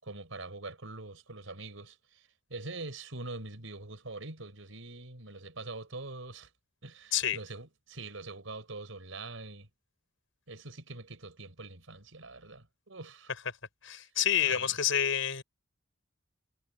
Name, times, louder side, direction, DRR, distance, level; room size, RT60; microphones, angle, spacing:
voice 1, 0.0-6.5 6.8-9.7 10.5-13.3 14.4-14.7, right 2 dB, 85° right, 4.3 m, -44 dB
voice 2, 13.8-15.4, left 9 dB, 80° left, 5.3 m, -28 dB
head